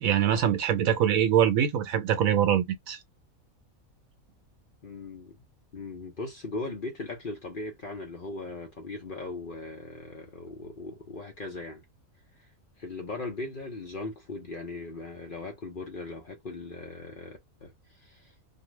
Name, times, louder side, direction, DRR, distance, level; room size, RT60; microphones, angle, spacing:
voice 1, 0.0-3.0, right 9 dB, 75° right, 1.1 m, -24 dB
voice 2, 4.8-5.4 5.7-11.8 12.8-17.7 18.0-18.3, left 3 dB, 45° left, 0.8 m, -38 dB
2.6 x 2.3 x 3.0 m
omnidirectional pair, 1.5 m